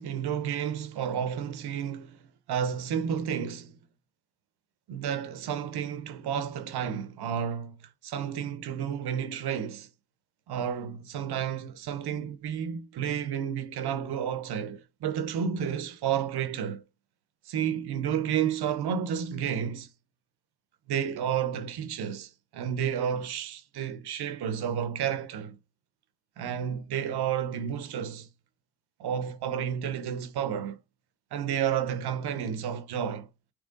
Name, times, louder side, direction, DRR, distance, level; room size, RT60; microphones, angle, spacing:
voice 1, 0.0-2.2 2.5-3.7 4.9-7.7 8.0-9.9 10.5-16.8 17.5-19.9 20.9-25.6 26.4-28.3 29.0-30.8 31.3-33.3, right 8 dB, 70° right, 0.7 m, -31 dB
3.7 x 3.0 x 3.7 m
cardioid pair, 60°, 40 cm